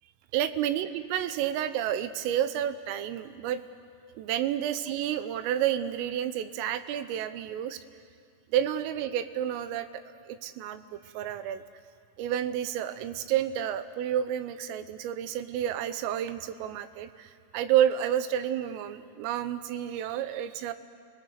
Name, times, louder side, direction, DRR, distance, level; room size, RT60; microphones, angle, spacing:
voice 1, 0.3-3.6 4.2-7.8 8.5-11.6 12.2-20.7, right 10 dB, 90° right, 11 dB, 3.5 m, -30 dB
29.0 x 19.5 x 6.6 m, 2.2 s
omnidirectional pair, 5.7 m